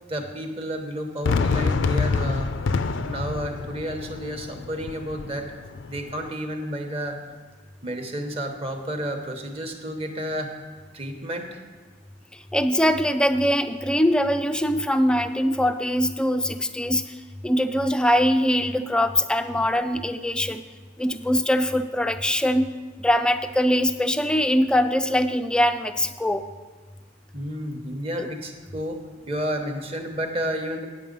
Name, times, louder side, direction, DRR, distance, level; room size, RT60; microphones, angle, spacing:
voice 1, 0.1-2.5 3.0-5.5 5.9-7.2 7.8-10.5 10.9-11.6 27.3-30.9, equal, 30° right, 4 dB, 1.0 m, -31 dB
Fireworks, 1.2-6.3, left 4 dB, 80° left, 0.4 m, -27 dB
voice 2, 12.5-17.1 17.4-20.6 21.0-22.7 23.0-26.4 28.2-28.3, equal, 5° left, 9 dB, 0.3 m, -22 dB
9.2 x 7.6 x 5.2 m, 1.4 s
head